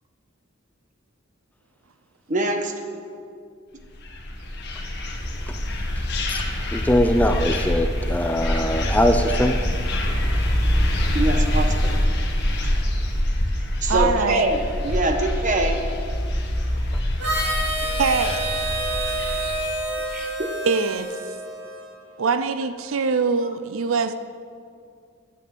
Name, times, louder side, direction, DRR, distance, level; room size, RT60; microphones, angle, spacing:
voice 1, 2.3-2.7 11.1-11.9 13.8-15.8 20.1-20.5, right 2 dB, 35° right, 4 dB, 1.2 m, -24 dB
sound 1, 4.0-19.7, left 1 dB, 55° left, 1.6 m, -24 dB
voice 2, 6.7-9.6, left 1 dB, 5° left, 6 dB, 0.5 m, -21 dB
voice 3, 10.0-10.4 13.9-14.5 17.9-18.5 20.6-21.1 22.2-24.1, right 5 dB, 75° right, 10 dB, 0.5 m, -23 dB
Harmonica, 17.2-21.9, right 1 dB, 55° right, 2.7 m, -28 dB
13.0 x 7.8 x 7.7 m, 2.3 s
head